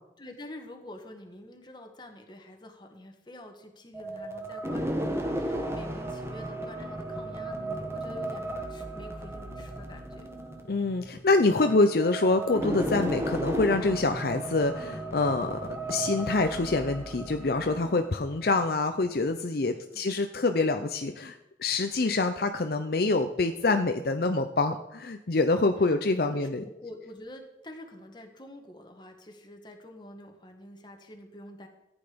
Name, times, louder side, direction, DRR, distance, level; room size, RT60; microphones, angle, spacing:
voice 1, 0.2-10.3 19.5-20.0 26.2-31.7, left 1 dB, 25° left, 4 dB, 1.6 m, -47 dB
sound 1, 3.9-18.7, right 1 dB, 15° right, 1.2 m, -35 dB
voice 2, 10.7-15.6 15.9-21.3 21.6-26.6, left 3 dB, 55° left, 7 dB, 0.6 m, -26 dB
14.5 x 9.0 x 5.2 m, 0.90 s
head